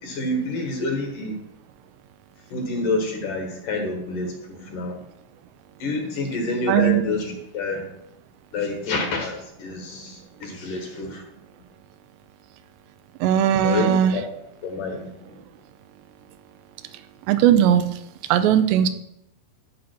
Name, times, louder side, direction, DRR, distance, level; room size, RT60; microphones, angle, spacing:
voice 1, 0.0-1.4 2.5-5.0 5.8-7.9 8.5-11.2 13.6-14.2 14.6-15.4, left 2 dB, 60° left, 3 dB, 2.6 m, -28 dB
voice 2, 6.7-7.0 13.2-14.1 17.3-17.9 18.3-18.9, right 10 dB, 85° right, 10 dB, 3.0 m, -18 dB
13.0 x 5.4 x 6.1 m, 0.80 s
omnidirectional pair, 5.0 m